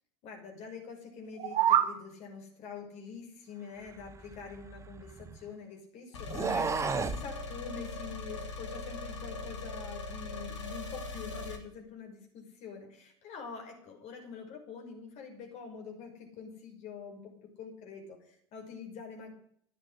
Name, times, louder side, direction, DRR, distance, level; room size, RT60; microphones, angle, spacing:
voice 1, 0.2-17.3 17.6-19.3, left 6 dB, 50° left, 3 dB, 5.8 m, -45 dB
sound 1, 1.3-2.0, right 10 dB, 45° right, 1.6 m, -26 dB
sound 2, 4.0-5.5 6.2-7.3, right 5 dB, 20° right, 1.0 m, -34 dB
sound 3, 6.1-11.6, left 2 dB, 80° left, 3.1 m, -40 dB
12.5 x 9.9 x 9.9 m, 0.66 s
hypercardioid pair, 80°, 15 cm